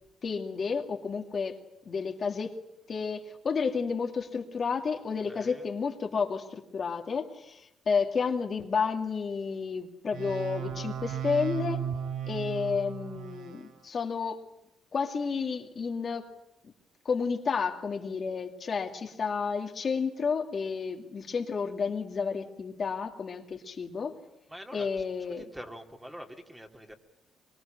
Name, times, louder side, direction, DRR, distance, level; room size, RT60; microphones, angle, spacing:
voice 1, 0.2-1.6 1.9-2.6 2.9-11.8 12.3-14.4 14.9-16.3 16.6-16.7 17.0-24.2 24.7-25.4, left 5 dB, 45° left, 3 dB, 2.3 m, -31 dB
voice 2, 5.3-5.7 24.5-25.0 25.3-26.9, equal, 10° right, 3 dB, 2.9 m, -45 dB
sound 1, 10.1-13.7, right 9 dB, 80° right, 2.8 m, -35 dB
23.5 x 23.0 x 9.0 m, 0.85 s
cardioid pair, 90°, 0 cm